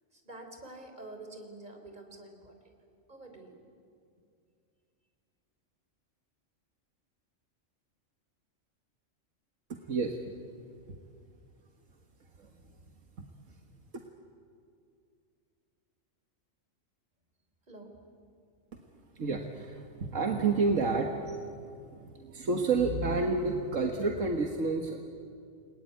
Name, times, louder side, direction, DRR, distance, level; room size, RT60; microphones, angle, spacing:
voice 1, 0.1-2.7 3.1-3.6 17.7-18.0, right 2 dB, 35° right, 4 dB, 3.9 m, -48 dB
voice 2, 9.9-10.2 12.4-12.5 13.2-13.3 19.2-25.0, right 3 dB, 80° right, 3 dB, 1.9 m, -30 dB
29.5 x 21.5 x 9.5 m, 2.4 s
omnidirectional pair, 1.3 m